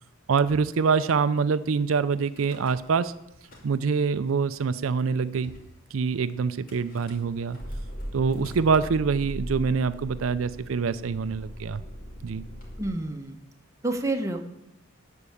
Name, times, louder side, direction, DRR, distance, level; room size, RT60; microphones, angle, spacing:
voice 1, 0.3-3.1 3.6-5.5 5.9-7.6 8.1-11.8 12.2-12.4, right 5 dB, 90° right, 13 dB, 0.5 m, -25 dB
Car / Engine starting / Idling, 2.3-3.1 3.3-4.1 4.8-4.9 5.0-5.1 5.4-5.7 6.7-12.9, equal, 45° left, 2.8 m, -40 dB
voice 2, 12.8-13.4 13.8-14.5, right 2 dB, 15° right, 4 dB, 1.0 m, -29 dB
12.0 x 4.6 x 8.5 m, 0.81 s
head